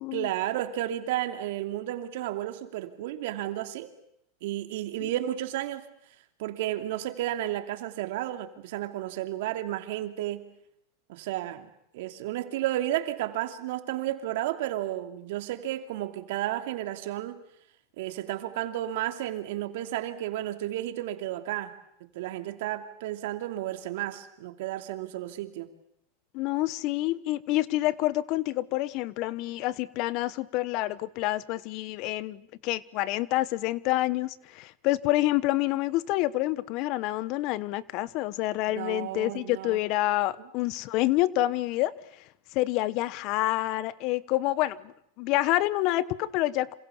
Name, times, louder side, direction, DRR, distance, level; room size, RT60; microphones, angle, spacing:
voice 1, 0.1-3.9 4.4-5.8 6.4-10.4 11.1-17.4 18.0-21.7 22.1-25.7 38.7-39.8 40.4-40.5, right 13 dB, 70° right, 2.9 m, -32 dB
voice 2, 26.3-41.9 42.5-46.8, left 17 dB, 50° left, 1.1 m, -28 dB
27.0 x 27.0 x 7.2 m
supercardioid pair, 120°, 0 cm